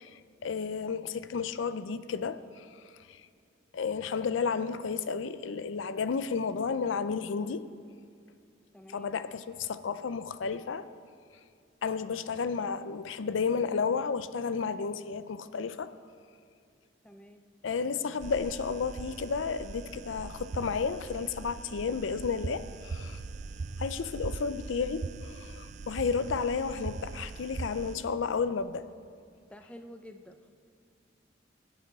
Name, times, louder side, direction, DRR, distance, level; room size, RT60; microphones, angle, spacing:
voice 1, 0.0-2.7 3.1-3.2 3.7-7.6 8.9-10.9 11.8-15.9 17.6-23.2 23.8-28.9, left 5 dB, 85° left, 13 dB, 0.5 m, -32 dB
voice 2, 8.7-9.1 17.0-17.4 29.5-30.5, equal, 5° left, 6 dB, 0.6 m, -49 dB
sound 1, 18.2-28.0, right 3 dB, 40° right, 0.3 m, -41 dB
20.0 x 8.9 x 4.1 m, 2.2 s
head